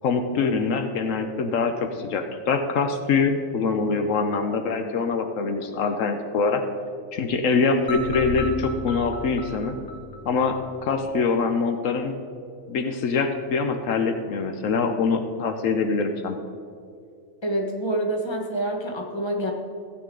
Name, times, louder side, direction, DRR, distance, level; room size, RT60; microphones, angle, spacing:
voice 1, 0.0-6.6 7.1-9.7 10.2-12.1 12.7-16.4, left 4 dB, 75° left, 6 dB, 1.1 m, -24 dB
sound 1, 7.9-11.0, equal, 60° left, 1.5 m, -32 dB
voice 2, 17.4-19.5, right 1 dB, 20° left, 1 dB, 1.3 m, -27 dB
15.5 x 8.5 x 3.8 m, 2.4 s
omnidirectional pair, 1.4 m